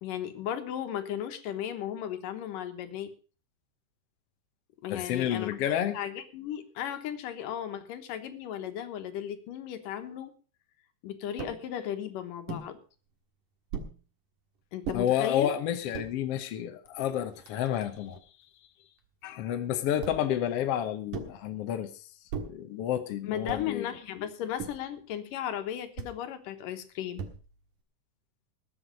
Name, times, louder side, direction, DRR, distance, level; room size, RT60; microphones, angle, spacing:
voice 1, 0.0-3.1 4.8-5.5 5.9-10.3 11.0-12.8 14.7-15.5 23.2-27.3, left 10 dB, 85° left, 8 dB, 2.9 m, -35 dB
voice 2, 4.9-6.0 14.9-18.2 19.2-23.9, left 10 dB, 70° left, 8 dB, 1.5 m, -30 dB
sound 1, 11.4-11.6 12.5-12.7 13.7-14.0 14.8-15.0 15.7-16.1 16.9-17.0 17.2-18.2 20.0-20.4 21.1-21.4 22.3-22.6 23.5-23.8 24.6-24.9 26.0-26.2 27.2-27.6, right 6 dB, 75° right, 3.1 m, -39 dB
20.0 x 8.1 x 5.1 m, 0.38 s
omnidirectional pair, 3.8 m